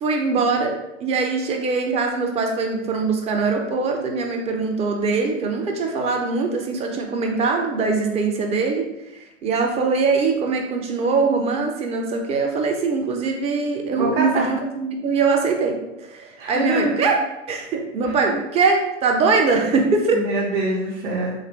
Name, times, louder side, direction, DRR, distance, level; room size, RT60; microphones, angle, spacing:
voice 1, 0.0-8.9 9.4-17.2 17.5-20.2, right 4 dB, 15° right, 2 dB, 0.4 m, -22 dB
voice 2, 14.0-14.5 16.4-17.1 18.0-18.1 20.1-21.3, right 2 dB, 55° right, -7 dB, 1.0 m, -24 dB
3.4 x 2.6 x 3.0 m, 0.93 s
hypercardioid pair, 100°, 38 cm